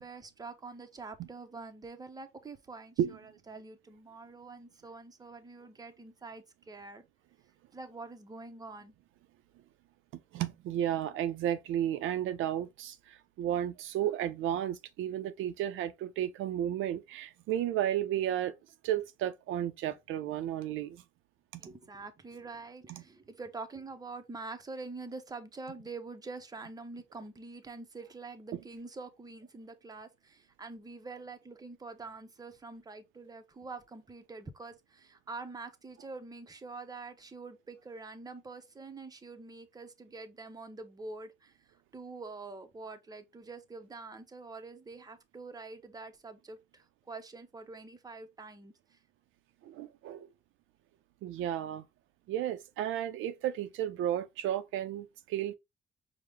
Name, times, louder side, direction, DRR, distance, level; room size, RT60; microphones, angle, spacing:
voice 1, 0.0-7.0 7.7-8.9 21.6-41.5 41.9-48.7, right 3 dB, 20° right, 0.7 m, -46 dB
voice 2, 10.1-18.5 18.8-21.0 21.5-21.6 22.9-23.0 49.6-50.3 51.2-51.8 52.3-55.5, right 11 dB, 85° right, 0.5 m, -33 dB
4.7 x 2.1 x 3.4 m
cardioid pair, 90°, 20 cm